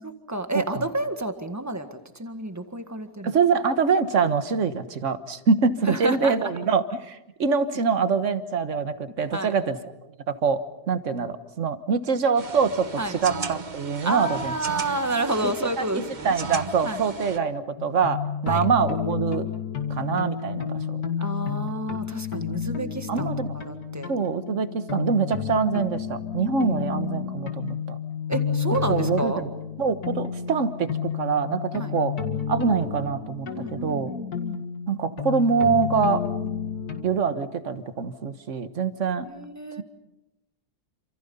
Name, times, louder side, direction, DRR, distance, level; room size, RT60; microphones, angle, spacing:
voice 1, 0.0-3.4 5.9-6.5 9.3-9.5 13.0-13.2 14.0-16.3 16.8-17.0 18.5-18.7 21.2-24.1 26.6-27.4 28.3-29.4 31.7-31.9 33.4-34.6 39.2-39.8, right 2 dB, 10° right, 7 dB, 1.7 m, -30 dB
voice 2, 3.2-9.8 10.3-14.5 15.6-15.7 16.2-19.5 19.9-21.0 23.1-23.5 24.1-28.0 28.9-29.5 29.8-32.1 32.5-34.1 34.9-36.3 37.0-39.3, right 5 dB, 50° right, 10 dB, 1.6 m, -24 dB
sound 1, 12.4-17.4, right 5 dB, 30° right, 1.0 m, -36 dB
sound 2, 17.8-37.0, left 7 dB, 65° left, 2.6 m, -31 dB
28.5 x 27.0 x 5.6 m, 0.93 s
omnidirectional pair, 1.7 m